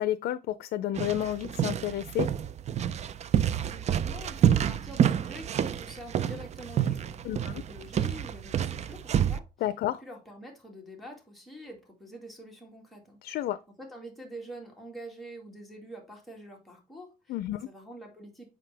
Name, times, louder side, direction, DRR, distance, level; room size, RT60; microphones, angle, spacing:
voice 1, 0.0-2.3 7.2-7.5 9.6-10.0 13.2-13.6 17.3-17.7, left 13 dB, 90° left, 0.4 m, -31 dB
sound 1, 1.0-9.4, right 9 dB, 45° right, 0.4 m, -28 dB
voice 2, 3.4-9.4 10.0-13.2 13.8-18.6, right 1 dB, ahead, 2.2 m, -46 dB
7.6 x 4.9 x 3.3 m
cardioid pair, 135°, 16 cm